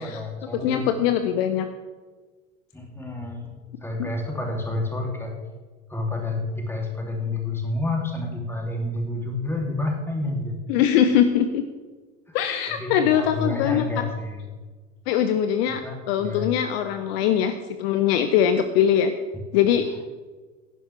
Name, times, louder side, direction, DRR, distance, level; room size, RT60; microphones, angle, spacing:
voice 1, 0.0-0.9 2.7-5.4 5.9-10.6 12.3-12.4 12.7-14.5 15.8-16.5, left 2 dB, 5° left, 0 dB, 3.0 m, -29 dB
voice 2, 0.5-1.7 4.0-4.1 10.7-11.6 12.3-14.0 15.1-19.1 19.5-19.9, left 9 dB, 50° left, 9 dB, 0.9 m, -22 dB
16.5 x 11.0 x 3.4 m, 1.4 s
figure-of-eight pair, 80°, 39 cm